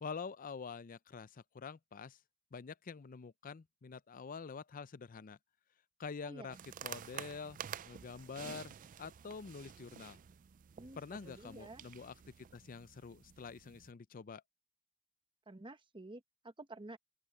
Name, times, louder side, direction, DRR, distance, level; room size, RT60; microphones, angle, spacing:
voice 1, 0.0-2.2 2.5-5.4 6.0-7.6 7.8-10.2 11.0-14.4, left 5 dB, 40° left, 0.5 m, -47 dB
voice 2, 6.2-6.6 10.8-11.8 15.5-17.0, right 2 dB, 25° right, 1.0 m, -51 dB
sound 1, 6.5-13.9, right 9 dB, 40° right, 0.4 m, -50 dB
open air
head